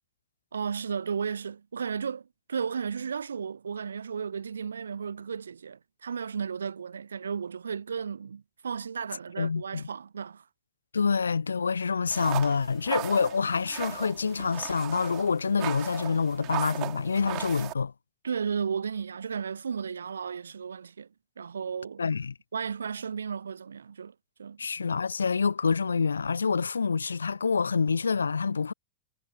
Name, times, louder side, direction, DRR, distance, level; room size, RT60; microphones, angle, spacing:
voice 1, 0.5-10.4 18.2-21.1 21.4-22.0 22.5-24.6, right 6 dB, 70° right, 0.4 m, -34 dB
voice 2, 9.4-9.8 10.9-17.9 22.0-22.3 24.6-28.7, left 5 dB, 75° left, 0.3 m, -27 dB
sound 1, 12.1-17.7, right 21 dB, 40° right, 3.0 m, -37 dB
figure-of-eight pair, 90°, 0 cm